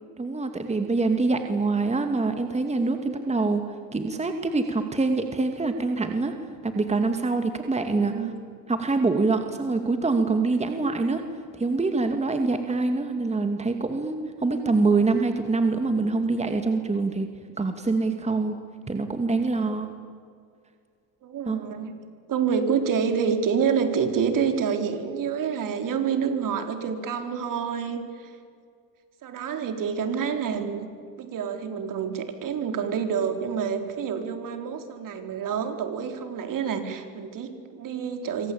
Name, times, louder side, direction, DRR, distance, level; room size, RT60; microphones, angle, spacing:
voice 1, 0.2-6.3 6.6-8.3 8.7-11.2 11.5-17.3 17.6-18.5 18.9-19.9 21.5-21.6, right 3 dB, 15° right, 6 dB, 2.4 m, -25 dB
voice 2, 7.8-8.3 14.5-14.8 21.2-21.9 22.3-28.3 29.2-30.9 31.2-38.5, right 6 dB, 50° right, 6 dB, 4.2 m, -28 dB
27.0 x 24.5 x 8.8 m, 2.2 s
supercardioid pair, 100°, 42 cm